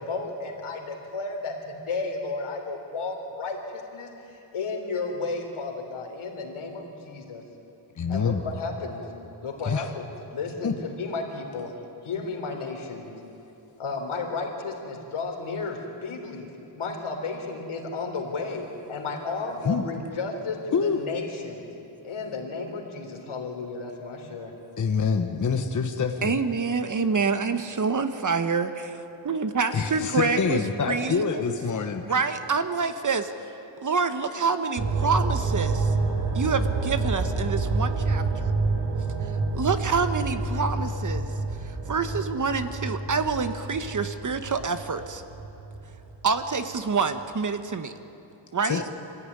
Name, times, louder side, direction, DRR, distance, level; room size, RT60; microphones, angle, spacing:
voice 1, 0.0-7.4 8.1-9.0 9.4-11.7 12.0-13.1 13.8-16.5 16.8-21.6 22.0-24.5, left 3 dB, 85° left, 2 dB, 3.8 m, -33 dB
voice 2, 8.0-8.4 9.6-9.9 10.6-10.7 19.6-19.8 20.7-21.0 24.8-26.4 29.7-32.0 48.6-48.9, left 5 dB, 40° left, 5 dB, 1.1 m, -26 dB
voice 3, 26.2-31.6 32.1-33.3 33.8-35.9 36.3-38.5 39.5-41.3 41.6-45.2 46.2-47.9 48.5-48.8, right 5 dB, 40° right, 9 dB, 1.1 m, -27 dB
sound 1, 34.8-46.4 46.7-46.8, right 3 dB, 80° right, 3.0 m, -28 dB
25.0 x 16.0 x 9.7 m, 2.9 s
wide cardioid pair, 155°, 48 cm